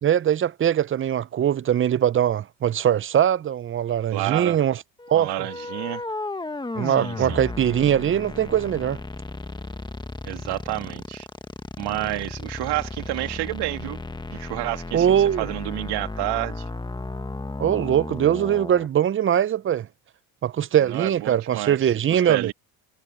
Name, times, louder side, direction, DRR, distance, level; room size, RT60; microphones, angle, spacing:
voice 1, 0.0-4.8 5.1-5.3 6.8-9.0 14.9-15.5 17.6-19.9 20.4-22.5, right 10 dB, 30° right, 0.7 m, -21 dB
voice 2, 4.1-4.6 5.1-6.0 6.8-7.4 10.2-11.3 11.8-14.0 14.3-15.1 15.4-16.6 20.8-22.5, right 19 dB, 65° right, 2.5 m, -30 dB
sound 1, 5.0-18.9, left 3 dB, 10° left, 1.3 m, -34 dB
supercardioid pair, 80°, 43 cm